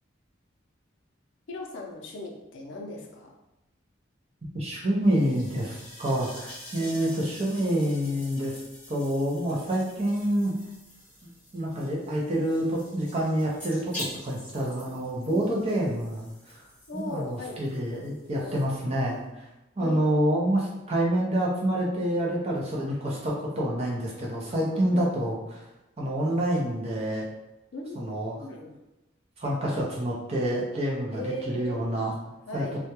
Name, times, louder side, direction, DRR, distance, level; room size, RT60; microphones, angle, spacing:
voice 1, 1.5-3.4 6.7-7.0 15.3-15.4 16.9-17.6 18.3-18.5 19.8-20.0 24.9-25.1 27.7-28.8 31.1-31.8 32.5-32.8, left 1 dB, 70° left, 0 dB, 0.4 m, -38 dB
voice 2, 4.5-8.6 8.9-10.5 11.5-16.6 16.9-19.2 19.8-25.6 26.0-27.3 28.0-28.4 29.4-32.6, right 1 dB, 30° right, -3 dB, 0.5 m, -27 dB
sound 1, 5.0-19.3, left 1 dB, 5° left, 0.9 m, -46 dB
2.2 x 2.1 x 2.9 m, 0.97 s
head